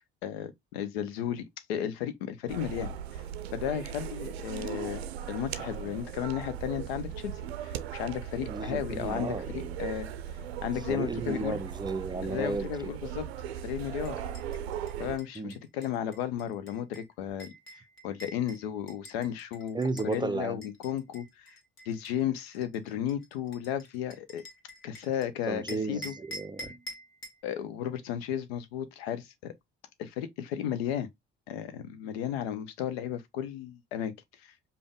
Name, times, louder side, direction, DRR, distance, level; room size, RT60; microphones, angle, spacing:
voice 1, 0.2-3.2 3.5-5.0 5.3-10.1 10.6-11.6 12.2-13.3 13.6-14.3 15.0-19.8 20.0-21.6 21.9-24.4 24.8-26.1 27.4-29.5 30.0-31.1 31.5-34.1 34.4-34.5, left 10 dB, 75° left, 0.7 m, -34 dB
sound 1, 2.5-15.2, right 9 dB, 85° right, 0.5 m, -38 dB
voice 2, 8.5-9.8 10.9-12.9 15.4-15.6 19.7-20.6 25.5-26.7, right 3 dB, 15° right, 0.5 m, -34 dB
sound 2, 14.0-20.2 20.6-25.3 25.7-27.4, equal, 40° left, 1.5 m, -47 dB
5.1 x 2.2 x 3.6 m
hypercardioid pair, 55°, 31 cm